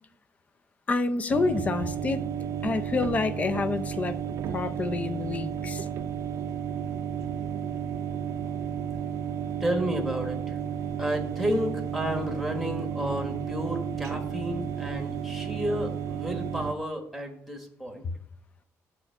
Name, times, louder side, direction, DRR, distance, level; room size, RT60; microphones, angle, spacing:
voice 1, 0.9-2.2 2.6-4.2 4.5-5.9, left 3 dB, 25° left, 11 dB, 0.5 m, -28 dB
sound 1, 1.3-16.7, right 8 dB, 75° right, 0.5 m, -32 dB
voice 2, 9.6-10.6 11.0-18.1, equal, ahead, 3 dB, 1.4 m, -31 dB
7.0 x 4.4 x 6.7 m, 0.67 s
cardioid pair, 160°, 5 cm